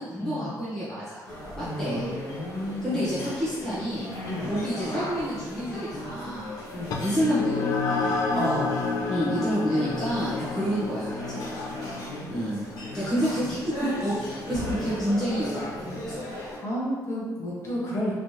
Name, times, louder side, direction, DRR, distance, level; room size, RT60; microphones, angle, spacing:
voice 1, 0.0-2.1 2.8-4.1 4.5-6.5 7.0-8.3 9.1-11.6 12.2-16.2, equal, 5° left, -12 dB, 1.0 m, -29 dB
sound 1, 1.3-16.6, left 1 dB, 80° left, 1.3 m, -37 dB
voice 2, 1.6-3.1 4.2-4.5 6.7-7.0 8.3-8.8 16.6-18.1, equal, 40° left, -6 dB, 1.1 m, -31 dB
sound 2, 6.9-15.8, left 4 dB, 65° left, 0.4 m, -31 dB
3.2 x 3.1 x 2.8 m, 1.4 s
cardioid pair, 150°, 7 cm